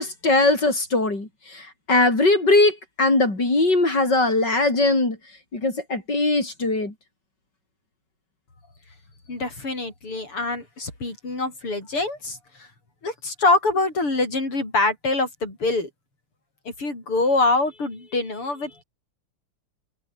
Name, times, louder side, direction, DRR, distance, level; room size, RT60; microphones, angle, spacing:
voice 1, 0.0-5.2 5.5-6.9, left 2 dB, 50° left, 7.0 m, -20 dB
voice 2, 9.3-12.7 13.0-15.9 16.7-18.8, left 2 dB, 80° left, 8.4 m, -24 dB
omnidirectional pair, 2.4 m